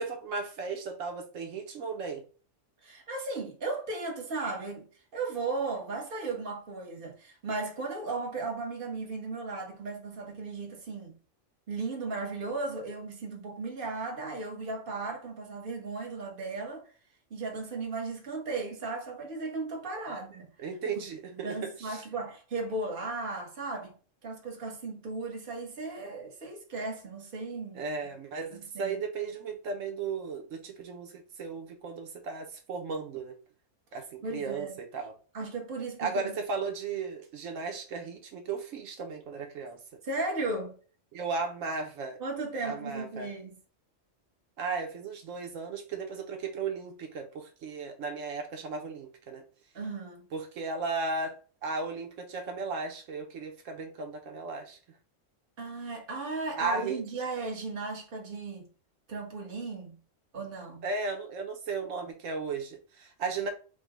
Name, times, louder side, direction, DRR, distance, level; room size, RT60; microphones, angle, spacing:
voice 1, 0.0-2.2 20.1-20.2 20.6-22.0 27.7-33.3 33.9-35.1 36.0-39.8 41.1-42.2 42.6-43.3 44.6-49.4 50.3-51.4 51.6-54.8 56.6-57.0 60.8-63.5, right 4 dB, 90° right, 1.2 m, -35 dB
voice 2, 2.8-11.1 11.7-16.9 17.3-20.5 20.9-21.1 21.3-23.9 24.2-27.8 28.5-29.0 34.2-34.8 35.3-36.4 40.0-40.8 42.2-43.6 49.7-50.3 55.6-58.7 59.1-60.0 60.3-60.8, right 3 dB, 45° right, 1.3 m, -36 dB
5.0 x 2.2 x 4.7 m
omnidirectional pair, 1.3 m